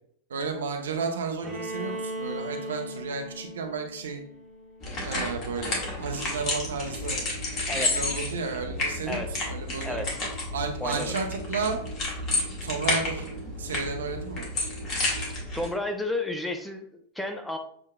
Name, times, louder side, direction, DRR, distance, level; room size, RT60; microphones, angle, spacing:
voice 1, 0.3-4.2 5.0-7.2 7.7-10.1 10.5-11.8 12.6-13.3 13.6-14.5, right 4 dB, 65° right, 4 dB, 0.7 m, -32 dB
Bowed string instrument, 1.4-5.3, right 1 dB, 20° right, 1.0 m, -38 dB
sound 1, 4.8-15.7, left 2 dB, 35° left, 1.4 m, -31 dB
voice 2, 7.7-8.0 9.1-9.3 9.8-10.2 10.8-11.1 15.5-17.6, left 2 dB, 5° left, 5 dB, 0.5 m, -32 dB
6.9 x 2.7 x 2.2 m, 0.65 s
figure-of-eight pair, 90°, 0 cm